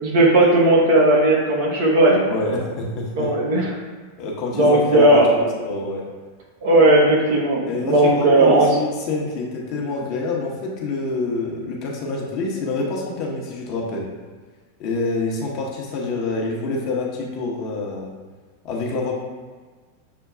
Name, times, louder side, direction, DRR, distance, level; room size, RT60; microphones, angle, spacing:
voice 1, 0.0-2.3 3.2-3.7 4.5-5.3 6.6-8.7, right 2 dB, 50° right, -2 dB, 0.9 m, -16 dB
voice 2, 2.3-3.3 4.2-6.0 7.6-14.1 14.8-18.1 18.6-19.1, left 3 dB, 40° left, -2 dB, 0.8 m, -26 dB
6.5 x 2.2 x 2.5 m, 1.4 s
figure-of-eight pair, 90°, 0 cm